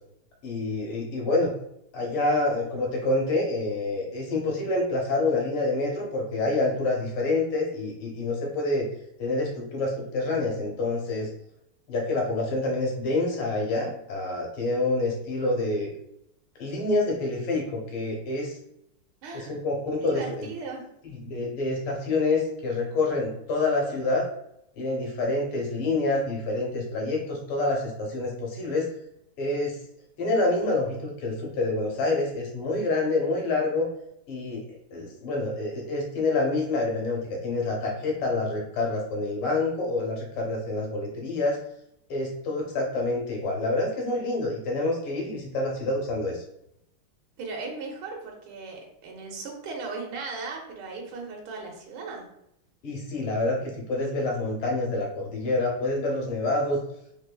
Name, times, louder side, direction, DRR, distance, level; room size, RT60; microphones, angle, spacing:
voice 1, 0.4-1.5 1.9-8.9 9.2-11.3 11.9-15.9 16.6-18.6 19.3-20.5 21.0-24.3 24.8-28.9 29.4-29.8 30.2-33.9 34.3-34.6 34.9-41.6 42.1-46.4 52.8-56.8, left 2 dB, 80° left, 0 dB, 1.9 m, -27 dB
voice 2, 19.2-19.5 20.0-20.9 47.4-52.3 53.5-53.6, right 4 dB, 75° right, 0 dB, 1.7 m, -37 dB
4.2 x 2.9 x 2.2 m, 0.77 s
omnidirectional pair, 2.4 m